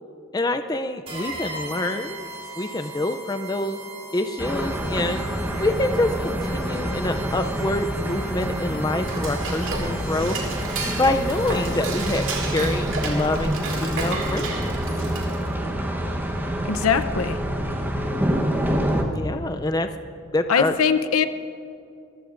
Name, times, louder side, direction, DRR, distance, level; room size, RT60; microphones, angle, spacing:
voice 1, 0.3-2.3 2.6-3.8 4.1-5.2 5.6-10.4 10.9-14.7 19.1-19.9 20.3-20.7, left 2 dB, 20° left, 8 dB, 0.4 m, -26 dB
sound 1, 1.1-12.4, right 2 dB, 25° right, 2.6 m, -39 dB
sound 2, 4.4-19.0, equal, 10° right, 1.0 m, -27 dB
Dishes pots and pans / Cutlery silverware, 8.7-15.5, right 3 dB, 65° right, 2.4 m, -32 dB
voice 2, 16.6-17.4 20.5-21.3, left 6 dB, 90° left, 11 dB, 0.7 m, -21 dB
25.5 x 15.0 x 2.6 m, 2.6 s
head